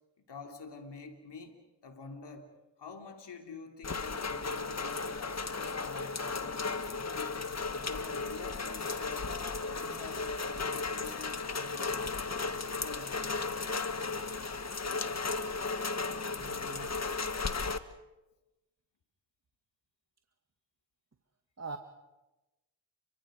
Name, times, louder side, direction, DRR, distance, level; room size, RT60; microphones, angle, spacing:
voice 1, 0.2-1.6 1.8-7.4 7.7-9.4 9.7-12.2 12.6-13.2 17.5-17.7, left 4 dB, 70° left, 4 dB, 3.2 m, -48 dB
Rain, 3.8-17.8, left 4 dB, 40° left, 1.7 m, -35 dB
voice 2, 16.4-17.0 21.6-21.8, right 4 dB, 40° right, 5 dB, 2.0 m, -43 dB
30.0 x 24.5 x 5.2 m, 1.0 s
supercardioid pair, 40°, 42 cm